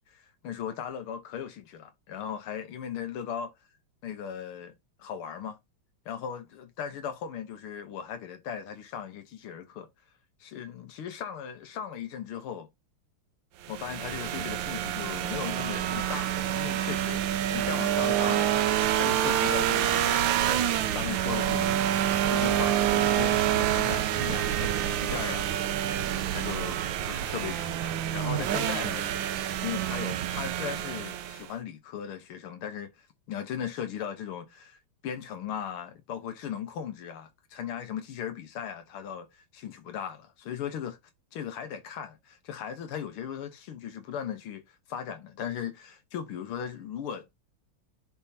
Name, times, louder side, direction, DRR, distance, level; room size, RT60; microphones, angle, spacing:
voice 1, 0.0-3.5 4.0-4.7 5.0-5.6 6.1-9.9 10.4-12.7 13.7-18.5 18.9-20.1 20.9-21.8 22.3-25.9 26.3-26.8 27.1-29.1 29.6-34.8 35.0-41.0 41.3-44.6 44.9-47.3, left 8 dB, 85° left, 1.9 m, -37 dB
sound 1, 13.6-31.5, right 11 dB, 70° right, 1.3 m, -27 dB
10.5 x 3.5 x 2.8 m
omnidirectional pair, 2.3 m